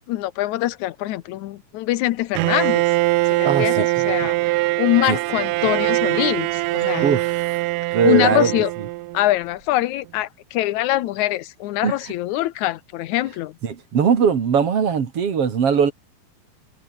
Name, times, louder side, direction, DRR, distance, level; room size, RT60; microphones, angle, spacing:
voice 1, 0.1-2.8 3.3-7.1 8.0-8.7 9.1-13.6, left 15 dB, 70° left, 2.0 m, -23 dB
Bowed string instrument, 2.4-9.3, right 22 dB, 80° right, 2.0 m, -22 dB
voice 2, 3.4-4.3 5.1-5.2 7.0-7.6 7.9-8.5 11.8-11.9 13.6-15.9, right 7 dB, 45° right, 2.9 m, -20 dB
omnidirectional pair, 4.0 m